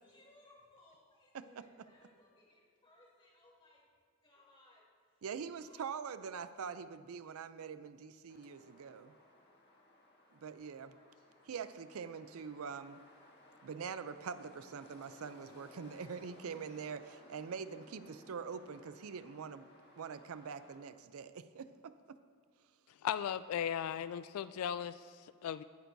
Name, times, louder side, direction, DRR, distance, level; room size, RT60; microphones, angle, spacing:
voice 1, 0.0-3.8 4.2-4.8 5.1-5.2 5.6-5.9 10.8-11.3, left 2 dB, 25° left, -4 dB, 3.2 m, -64 dB
voice 2, 1.3-1.6 5.2-9.1 10.3-11.0 11.5-13.0 13.6-19.7 20.0-22.2, right 6 dB, 75° right, 12 dB, 0.5 m, -44 dB
sound 1, 8.3-20.8, left 1 dB, 50° left, 1.7 m, -61 dB
voice 3, 23.0-25.6, left 9 dB, 80° left, 15 dB, 0.3 m, -37 dB
18.5 x 9.0 x 2.7 m, 2.2 s
head